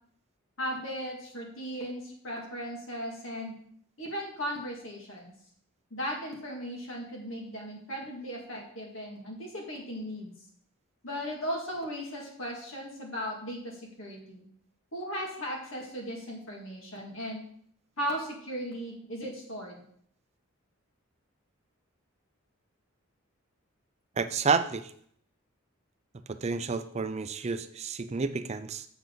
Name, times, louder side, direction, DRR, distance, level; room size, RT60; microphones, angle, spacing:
voice 1, 0.6-3.5 4.0-5.3 5.9-10.3 11.0-14.5 14.9-17.4 18.0-19.8, equal, 65° left, -1 dB, 2.3 m, -37 dB
voice 2, 24.2-24.9 26.4-28.9, right 4 dB, 30° right, 11 dB, 0.4 m, -30 dB
7.8 x 7.2 x 3.9 m, 0.63 s
head